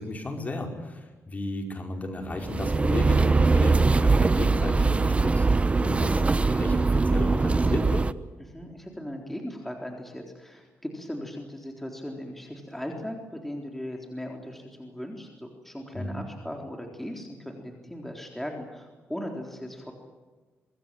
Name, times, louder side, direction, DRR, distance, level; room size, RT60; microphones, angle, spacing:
voice 1, 0.0-8.0 15.9-16.2, left 2 dB, 30° left, 3 dB, 5.4 m, -33 dB
sound 1, 2.3-8.1, right 3 dB, 25° right, 0.9 m, -22 dB
voice 2, 8.5-19.9, left 1 dB, 5° left, 2 dB, 3.8 m, -38 dB
25.0 x 21.5 x 9.1 m, 1.3 s
cardioid pair, 95°, 5 cm